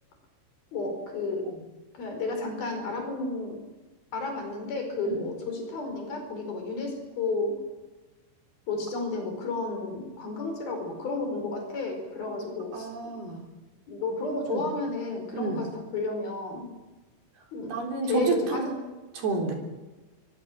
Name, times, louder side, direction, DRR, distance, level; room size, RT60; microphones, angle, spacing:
voice 1, 0.7-1.5 2.0-3.6 4.1-7.6 8.7-12.9 13.9-16.7 17.5-17.8 18.0-18.7, left 3 dB, 55° left, 4 dB, 6.5 m, -32 dB
voice 2, 12.7-13.4 14.5-14.6 15.3-15.7 17.6-18.8 19.2-19.5, right 4 dB, 60° right, 2 dB, 5.2 m, -30 dB
24.0 x 23.5 x 7.4 m, 1.2 s
omnidirectional pair, 5.4 m